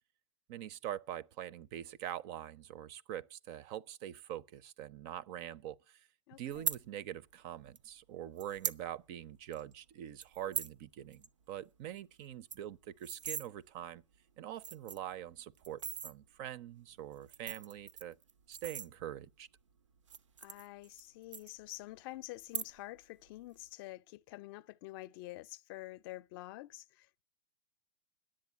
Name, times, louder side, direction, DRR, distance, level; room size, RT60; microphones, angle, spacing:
voice 1, 0.5-6.1 6.4-14.0 14.4-18.2 18.5-19.5, right 11 dB, 45° right, 0.5 m, -44 dB
voice 2, 6.3-6.6 20.4-27.2, left 18 dB, 50° left, 0.5 m, -48 dB
sound 1, 6.5-6.8 7.8-7.9 8.4-8.8 9.2-9.3 9.5-9.7 10.2-10.8 11.1-11.3 11.6-11.7 12.0-12.1 12.3-13.5 14.1-14.2 14.5-15.1 15.6-16.1 17.1-19.3 20.0-21.1 21.3-22.0 22.4-23.0 23.3-23.7, right 7 dB, 85° right, 0.6 m, -40 dB
10.5 x 7.5 x 8.3 m
hypercardioid pair, 105°, 15 cm